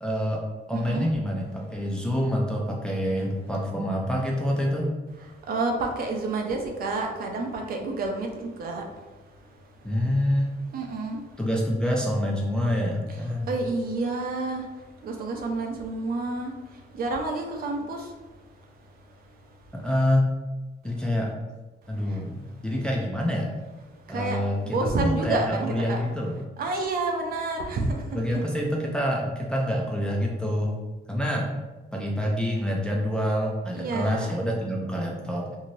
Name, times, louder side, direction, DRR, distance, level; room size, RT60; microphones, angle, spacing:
voice 1, 0.0-0.4 0.7-4.9 9.8-10.6 11.4-13.5 19.7-20.3 20.8-21.3 21.9-23.5 24.1-26.5 28.1-30.8 31.1-31.5 31.9-35.5, equal, 5° left, -2 dB, 0.3 m, -26 dB
voice 2, 0.7-1.0 5.5-8.8 10.7-11.2 13.5-14.6 15.0-16.5 17.0-18.0 24.1-24.4 24.6-26.0 26.6-28.0 33.7-34.3, right 3 dB, 55° right, 2 dB, 0.5 m, -29 dB
2.6 x 2.5 x 3.0 m, 1.2 s
wide cardioid pair, 165°, 18 cm